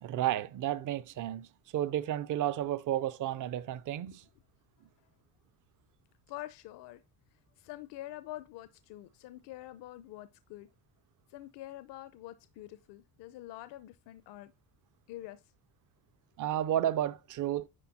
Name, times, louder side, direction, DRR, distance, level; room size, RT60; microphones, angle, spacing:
voice 1, 0.0-1.5 1.7-4.2 16.4-17.7, right 12 dB, 45° right, 0.6 m, -32 dB
voice 2, 6.3-7.0 7.6-10.7 11.3-14.5 15.1-15.4, left 15 dB, 70° left, 0.8 m, -46 dB
10.0 x 4.2 x 4.1 m
cardioid pair, 135°, 43 cm